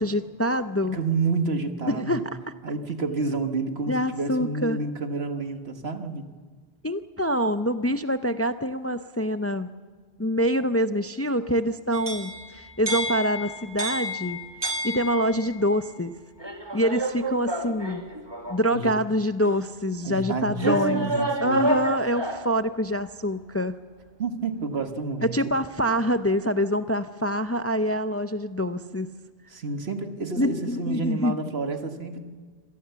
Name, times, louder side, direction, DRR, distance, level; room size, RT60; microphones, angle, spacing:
voice 1, 0.0-1.0 1.9-2.2 3.9-4.8 6.8-9.7 10.2-14.4 14.8-16.1 16.7-18.0 18.5-21.1 21.4-23.7 25.2-29.1 30.4-31.3, equal, 20° left, 10 dB, 0.4 m, -25 dB
voice 2, 0.9-2.3 2.6-6.2 18.7-18.9 20.0-21.6 24.2-25.3 29.5-32.2, right 3 dB, 80° right, 6 dB, 1.9 m, -29 dB
sound 1, 11.9-15.6 16.4-18.7 19.4-19.5 20.6-22.5, right 1 dB, 25° right, 1.7 m, -30 dB
25.5 x 18.0 x 7.0 m, 1.5 s
omnidirectional pair, 1.1 m